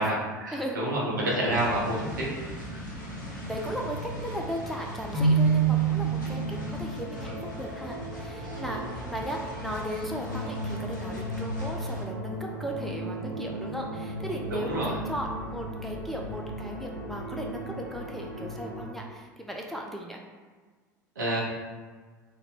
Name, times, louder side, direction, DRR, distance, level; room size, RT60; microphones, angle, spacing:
voice 1, 0.0-2.3 8.4-8.9 14.5-15.0 21.2-21.4, right 1 dB, 75° right, -5 dB, 0.9 m, -29 dB
sound 1, 1.5-12.0, equal, 70° left, 0.7 m, -41 dB
sound 2, 1.5-18.9, equal, 20° left, 1.2 m, -38 dB
voice 2, 3.5-20.2, equal, ahead, -1 dB, 0.4 m, -36 dB
Keyboard (musical), 5.1-7.0, right 5 dB, 20° right, 1.2 m, -24 dB
3.0 x 2.2 x 3.6 m, 1.4 s
figure-of-eight pair, 70°, 10 cm